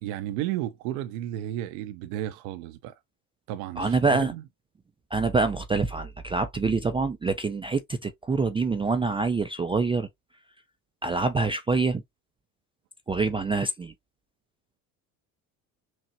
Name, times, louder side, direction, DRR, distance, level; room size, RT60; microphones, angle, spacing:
voice 1, 0.0-3.0 3.5-4.4, right 13 dB, 75° right, 0.7 m, -33 dB
voice 2, 3.8-4.3 5.1-10.1 11.0-12.0 13.1-13.9, right 4 dB, 15° right, 0.3 m, -25 dB
6.0 x 2.1 x 2.7 m
hypercardioid pair, 80°, 43 cm